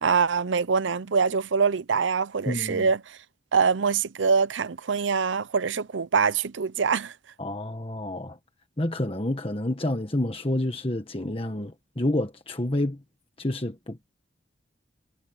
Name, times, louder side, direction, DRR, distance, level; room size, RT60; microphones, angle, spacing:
voice 1, 0.0-3.2 3.5-7.1, right 5 dB, 85° right, 0.7 m, -24 dB
voice 2, 2.5-2.9 7.4-8.4 8.8-13.0 13.4-14.1, left 1 dB, 30° left, 1.4 m, -29 dB
head